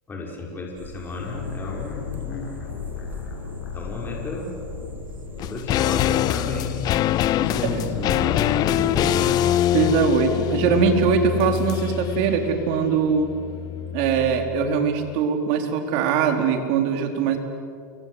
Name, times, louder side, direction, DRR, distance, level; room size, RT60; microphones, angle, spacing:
voice 1, 0.1-2.5 3.7-4.5 5.4-6.8 7.3-9.4, left 2 dB, 20° left, -1 dB, 5.9 m, -32 dB
sound 1, 0.8-9.3, right 4 dB, 20° right, 2.8 m, -40 dB
sound 2, 1.2-8.0, left 6 dB, 85° left, 7.9 m, -36 dB
sound 3, 5.4-14.8 15.0-15.1, left 13 dB, 40° left, 0.7 m, -24 dB
voice 2, 9.7-13.3 13.9-17.4, right 7 dB, 55° right, 5 dB, 4.5 m, -21 dB
30.0 x 24.5 x 8.2 m, 2.4 s
hypercardioid pair, 115°, 11 cm